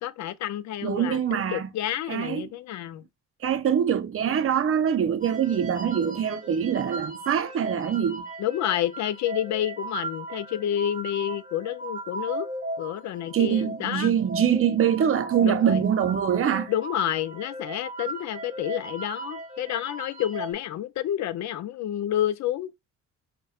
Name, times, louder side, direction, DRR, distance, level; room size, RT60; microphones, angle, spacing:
voice 1, 0.0-3.0 8.4-12.5 12.8-14.1 15.4-15.8 16.7-22.7, left 11 dB, 65° left, 0.5 m, -29 dB
voice 2, 0.8-1.7 2.1-2.5 3.4-8.2 13.3-16.7, right 8 dB, 45° right, 0.6 m, -24 dB
sound 1, 5.2-20.5, right 2 dB, 25° right, 1.1 m, -37 dB
5.4 x 2.2 x 2.3 m
cardioid pair, 90°, 30 cm